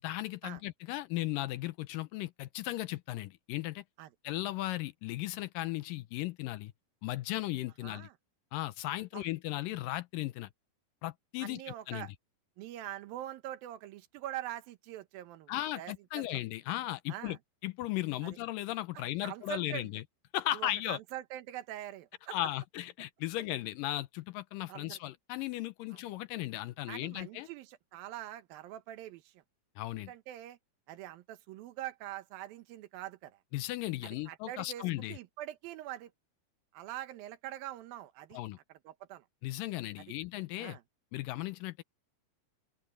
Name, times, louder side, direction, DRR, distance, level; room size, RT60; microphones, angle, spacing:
voice 1, 0.0-3.8 4.2-6.7 7.0-8.1 8.5-10.5 11.0-11.6 11.9-12.1 15.5-17.4 17.6-20.0 20.3-21.0 22.3-27.5 29.8-30.1 33.5-35.2 38.3-38.6 39.4-40.8 41.1-41.8, left 16 dB, 80° left, 2.1 m, -36 dB
voice 2, 7.8-8.1 9.1-9.2 11.4-12.1 12.6-16.2 17.1-17.4 18.2-18.4 19.2-19.9 20.5-22.4 24.7-25.0 25.9-26.0 26.9-29.4 30.1-30.6 30.9-33.4 34.0-36.1 36.7-38.4 38.7-39.3 40.0-40.1 40.6-40.8, right 13 dB, 75° right, 2.8 m, -44 dB
open air
omnidirectional pair, 4.4 m